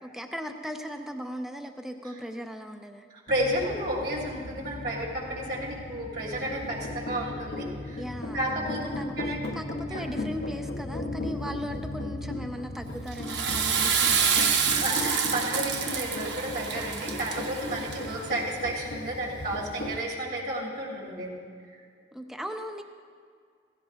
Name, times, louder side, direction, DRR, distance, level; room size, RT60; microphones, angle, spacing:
voice 1, 0.0-3.0 8.0-9.1 9.5-15.0 22.1-22.8, equal, 5° right, 4 dB, 0.7 m, -38 dB
voice 2, 3.1-8.0 8.3-8.8 9.2-9.4 9.9-10.0 14.7-21.4, right 1 dB, 65° right, -3 dB, 3.2 m, -32 dB
sound 1, 3.3-20.0, left 2 dB, 70° left, 0.9 m, -37 dB
Water / Toilet flush, 13.1-18.3, right 6 dB, 85° right, 1.0 m, -27 dB
16.0 x 16.0 x 2.5 m, 2.1 s
head